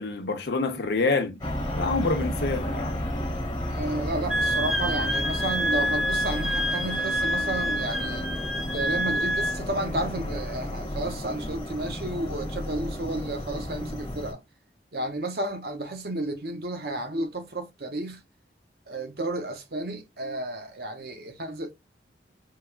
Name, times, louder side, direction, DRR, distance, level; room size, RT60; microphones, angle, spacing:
voice 1, 0.0-1.4 1.7-3.1, left 3 dB, 70° left, 0.7 m, -27 dB
sound 1, 1.4-14.3, left 1 dB, 25° left, 1.3 m, -32 dB
voice 2, 3.7-8.2 8.7-14.4 14.9-18.2 18.9-21.7, right 1 dB, 60° right, 0.8 m, -32 dB
Wind instrument woodwind instrument, 4.3-9.6, equal, ahead, 0.4 m, -27 dB
4.6 x 2.3 x 2.2 m
head